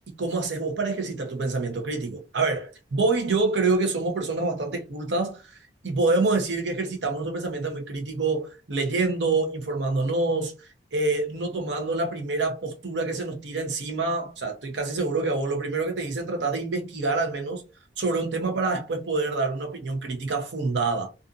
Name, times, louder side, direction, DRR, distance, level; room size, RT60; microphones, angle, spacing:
voice 1, 0.2-5.4 5.8-10.5 10.9-17.6 18.0-21.1, right 3 dB, 85° right, 0.8 m, -26 dB
2.5 x 2.5 x 2.4 m
head